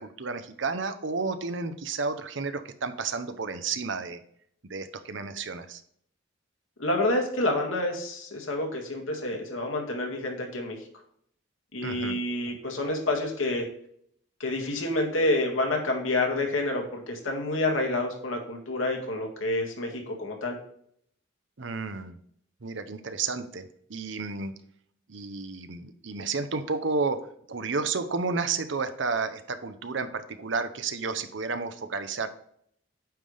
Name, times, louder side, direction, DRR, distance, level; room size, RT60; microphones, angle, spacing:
voice 1, 0.0-4.2 4.7-5.8 11.8-12.2 21.6-22.2 22.6-24.5 25.1-27.2 27.5-32.3, right 4 dB, 65° right, 10 dB, 0.8 m, -31 dB
voice 2, 6.8-10.8 11.7-13.7 14.4-20.6, left 2 dB, 90° left, 1 dB, 2.0 m, -28 dB
9.0 x 3.4 x 5.5 m, 0.66 s
head